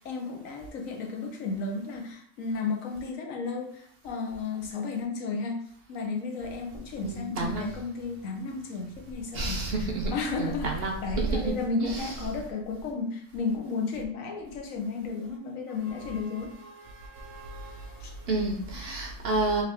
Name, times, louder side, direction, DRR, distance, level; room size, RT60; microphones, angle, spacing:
voice 1, 0.0-5.6 5.9-16.5 18.0-18.1, left 4 dB, 80° left, 2 dB, 1.2 m, -33 dB
voice 2, 7.0-7.7 9.3-10.1 10.4-10.9 11.3-11.5 11.9-12.0 17.2-17.7 18.3-19.6, right 3 dB, 55° right, 2 dB, 0.8 m, -29 dB
3.6 x 2.9 x 3.3 m, 0.68 s
omnidirectional pair, 1.4 m